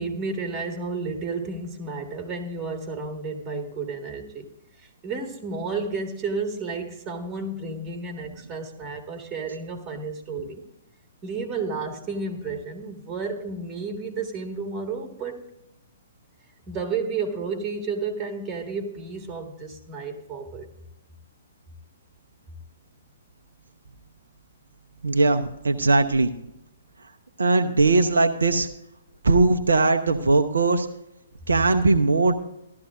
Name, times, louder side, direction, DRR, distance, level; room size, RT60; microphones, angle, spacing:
voice 1, 0.0-4.5 5.0-10.6 11.2-15.5 16.7-20.7, right 4 dB, 20° right, 1.7 m, -32 dB
voice 2, 25.0-26.4 27.4-28.7 29.2-30.9 31.5-32.4, right 3 dB, 70° right, 0.7 m, -20 dB
15.0 x 12.5 x 2.5 m
figure-of-eight pair, 120°, 0 cm